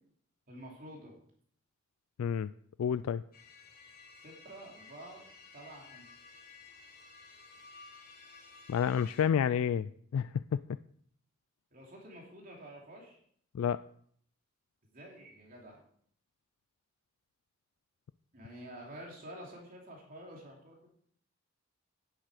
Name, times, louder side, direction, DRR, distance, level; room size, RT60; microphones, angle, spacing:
voice 1, 0.5-1.1 4.2-5.2 5.5-6.1 11.7-13.2 14.9-15.8 18.3-20.9, right 1 dB, 45° right, -1 dB, 2.9 m, -49 dB
voice 2, 2.2-2.5 2.8-3.2 8.7-10.3 13.5-13.8, left 8 dB, 90° left, 15 dB, 0.3 m, -29 dB
sound 1, 3.3-9.2, left 4 dB, 45° left, 2.9 m, -55 dB
9.9 x 9.0 x 4.9 m, 0.62 s
head